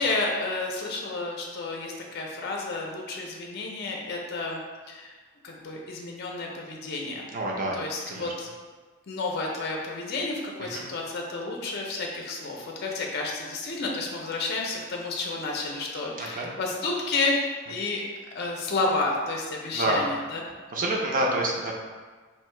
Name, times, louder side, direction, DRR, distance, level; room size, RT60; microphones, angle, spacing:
voice 1, 0.0-4.6 4.9-5.1 5.4-7.3 7.7-8.5 9.1-17.4 17.7-18.0 18.3-20.4, left 3 dB, 55° left, 0 dB, 0.5 m, -31 dB
voice 2, 7.3-7.8 8.1-8.3 10.7-10.9 16.2-16.5 19.7-20.1 20.7-21.7, right 1 dB, 45° right, -1 dB, 0.6 m, -27 dB
3.0 x 2.7 x 4.4 m, 1.4 s
head